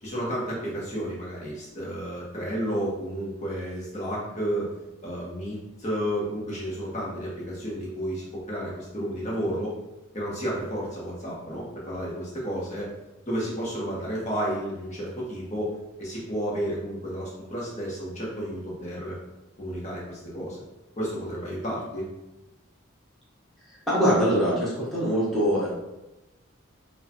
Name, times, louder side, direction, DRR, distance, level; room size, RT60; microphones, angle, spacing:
voice 1, 0.0-4.8 5.0-9.8 10.1-12.9 13.3-19.2 19.6-20.6 21.0-22.1, equal, 35° left, -5 dB, 1.1 m, -32 dB
voice 2, 23.9-25.7, equal, ahead, -8 dB, 1.1 m, -23 dB
6.4 x 2.3 x 3.0 m, 0.98 s
head